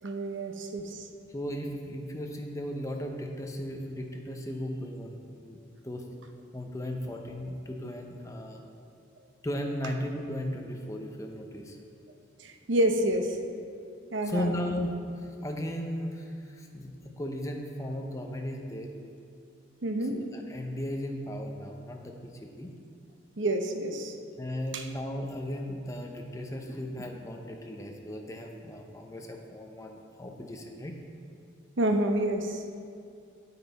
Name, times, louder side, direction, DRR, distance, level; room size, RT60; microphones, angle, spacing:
voice 1, 0.0-1.1 12.4-13.4 14.1-14.5 19.8-20.2 23.4-24.2 24.7-24.8 31.8-32.6, right 1 dB, 70° right, 4 dB, 0.8 m, -28 dB
voice 2, 1.3-5.6 5.8-6.0 6.5-8.6 9.4-11.8 14.2-18.9 20.1-22.7 24.4-31.0, equal, 15° left, 2 dB, 0.7 m, -36 dB
9.5 x 7.5 x 4.1 m, 2.4 s
head